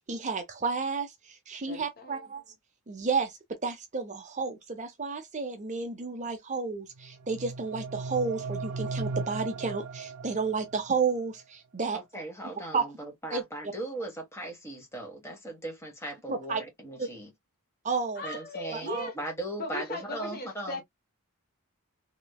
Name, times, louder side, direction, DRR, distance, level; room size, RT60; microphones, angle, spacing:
voice 1, 0.1-2.4 2.9-12.0 12.7-12.8 13.3-13.4 16.3-16.6 17.0-17.1 17.8-18.2 18.7-19.1, right 4 dB, 35° right, 0.6 m, -31 dB
voice 2, 1.7-2.3 18.2-19.1 19.5-20.8, left 2 dB, 45° left, 1.0 m, -38 dB
sound 1, 7.0-10.9, right 4 dB, 80° right, 0.4 m, -37 dB
voice 3, 11.9-17.3 18.2-18.9 19.1-20.8, right 1 dB, 10° left, 1.4 m, -38 dB
3.1 x 3.0 x 2.3 m
head